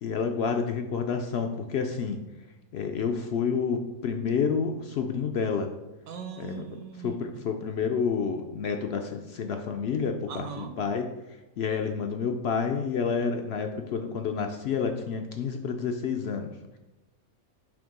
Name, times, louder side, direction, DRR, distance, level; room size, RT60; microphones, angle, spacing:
voice 1, 0.0-2.2 2.7-5.7 6.4-6.7 7.0-11.0 11.6-16.5, left 6 dB, 70° left, 5 dB, 0.6 m, -29 dB
voice 2, 6.1-7.4 10.3-10.8, right 7 dB, 70° right, 6 dB, 1.1 m, -40 dB
7.0 x 2.8 x 5.2 m, 1.0 s
omnidirectional pair, 1.5 m